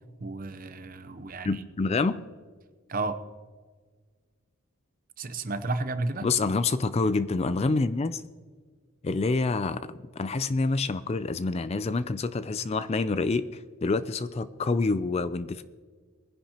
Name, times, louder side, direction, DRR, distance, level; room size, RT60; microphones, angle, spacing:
voice 1, 0.2-1.6 2.9-3.2 5.2-6.3, right 2 dB, 40° right, 11 dB, 0.7 m, -32 dB
voice 2, 1.4-2.2 6.2-8.2 9.0-15.6, left 3 dB, 30° left, 13 dB, 0.3 m, -27 dB
21.5 x 10.5 x 2.9 m, 1.5 s
head